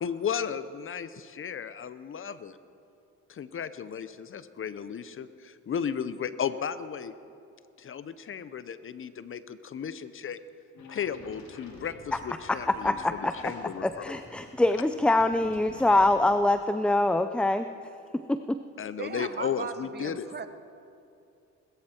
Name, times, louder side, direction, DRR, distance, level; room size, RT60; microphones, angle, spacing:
voice 1, 0.0-2.6 3.3-7.1 7.8-10.4 10.9-14.2 18.8-20.3, left 7 dB, 45° left, 14 dB, 0.7 m, -34 dB
sound 1, 10.7-16.1, left 3 dB, 65° left, 3.0 m, -49 dB
voice 2, 12.8-17.7 18.1-18.6, left 2 dB, 5° left, 10 dB, 0.4 m, -25 dB
voice 3, 19.0-20.5, right 5 dB, 35° right, 10 dB, 0.9 m, -37 dB
20.5 x 13.5 x 4.4 m, 2.6 s
cardioid pair, 90°, 30 cm